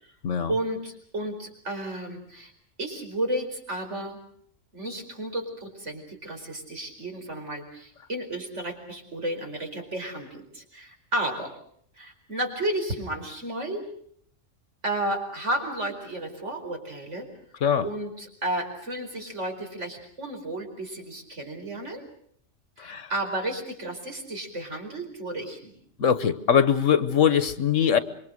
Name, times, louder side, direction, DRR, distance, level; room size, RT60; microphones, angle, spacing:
voice 1, 0.5-2.5 2.8-4.2 4.7-11.6 12.0-13.9 14.8-17.3 17.8-22.0 22.8-25.7, right 1 dB, 65° right, 3 dB, 5.2 m, -32 dB
voice 2, 26.0-28.0, left 8 dB, 75° left, 13 dB, 1.5 m, -22 dB
26.5 x 23.0 x 6.5 m, 0.64 s
omnidirectional pair, 1.3 m